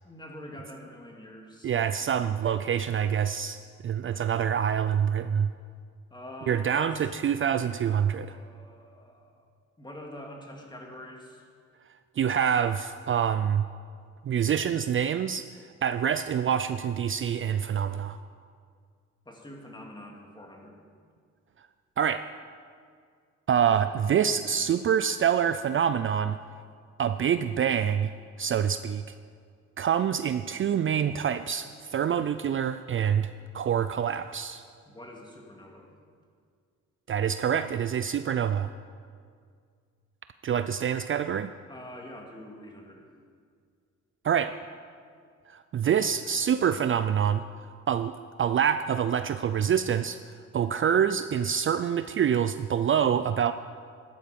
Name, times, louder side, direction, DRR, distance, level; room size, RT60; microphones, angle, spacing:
voice 1, 0.0-1.9 6.1-6.9 7.8-9.4 9.8-11.4 19.3-20.8 34.9-35.9 41.7-43.1, left 1 dB, 15° left, 0 dB, 2.6 m, -45 dB
voice 2, 1.6-5.5 6.5-8.4 12.2-13.7 14.2-15.5 15.8-18.2 22.0-22.2 23.5-26.4 27.0-28.1 28.4-29.0 29.8-34.6 37.1-38.7 40.4-41.5 44.2-44.5 45.5-47.4 47.9-48.1 48.4-50.2 50.5-53.5, right 8 dB, 45° right, 11 dB, 0.4 m, -26 dB
13.0 x 12.0 x 5.3 m, 2.1 s
cardioid pair, 85°, 29 cm